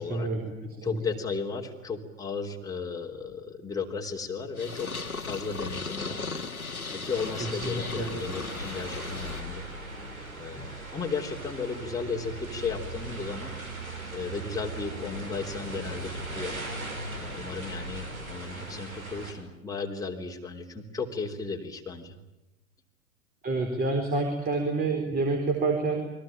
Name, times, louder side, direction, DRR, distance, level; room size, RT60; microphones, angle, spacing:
voice 1, 0.0-1.0 7.5-8.3 23.4-26.1, right 3 dB, 20° right, 4 dB, 4.2 m, -28 dB
voice 2, 0.8-4.9 5.2-6.2 6.9-9.7 10.3-13.5 14.1-16.6 17.2-22.2, left 4 dB, 10° left, 1 dB, 3.3 m, -35 dB
Purr, 4.6-9.4, left 4 dB, 90° left, 2.0 m, -36 dB
sound 1, 7.1-19.3, right 1 dB, 80° right, 6.3 m, -39 dB
29.0 x 22.0 x 9.1 m, 0.96 s
figure-of-eight pair, 105°, 42 cm